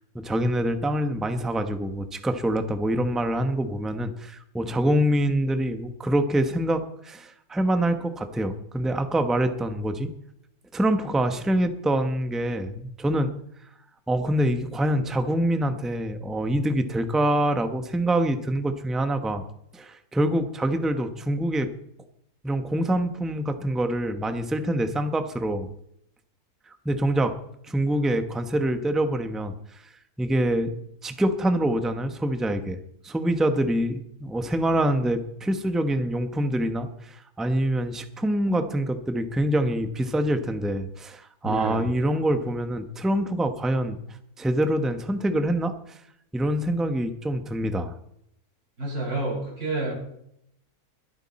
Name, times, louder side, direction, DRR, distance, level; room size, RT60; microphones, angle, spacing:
voice 1, 0.1-10.1 10.7-13.3 14.1-19.4 19.7-21.7 22.4-25.7 26.8-27.3 27.7-29.5 30.2-30.7 31.0-32.8 33.0-44.0 44.4-45.7 46.3-47.9, right 1 dB, ahead, 8 dB, 0.7 m, -25 dB
voice 2, 41.4-41.8 48.8-49.9, right 2 dB, 70° right, -2 dB, 6.3 m, -29 dB
22.0 x 8.6 x 4.2 m, 0.74 s
omnidirectional pair, 1.6 m